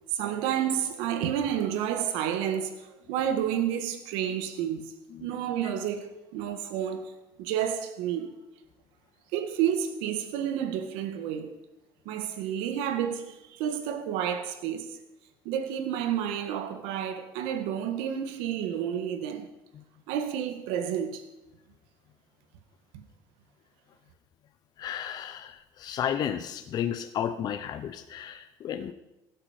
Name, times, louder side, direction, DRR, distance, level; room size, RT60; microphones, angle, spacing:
voice 1, 0.1-7.1 7.4-8.3 9.3-11.6 12.1-15.0 15.5-19.5 20.1-21.2, right 9 dB, 90° right, 1.7 m, -30 dB
voice 2, 24.8-28.9, left 9 dB, 50° left, 1.0 m, -33 dB
16.5 x 12.0 x 5.2 m
cardioid pair, 125°, 9 cm